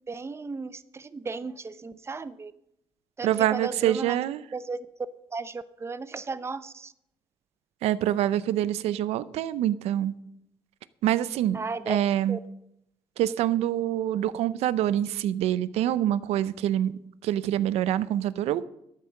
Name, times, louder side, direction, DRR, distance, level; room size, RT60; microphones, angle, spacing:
voice 1, 0.1-2.5 3.2-4.2 4.5-4.8 5.3-6.9 11.5-12.0 12.3-12.4, right 4 dB, 25° right, 14 dB, 0.7 m, -35 dB
voice 2, 3.2-4.4 7.8-10.1 11.0-12.4 13.2-16.9 17.2-18.7, right 12 dB, 90° right, 17 dB, 0.6 m, -26 dB
12.5 x 8.5 x 6.5 m, 0.78 s
cardioid pair, 90°, 11 cm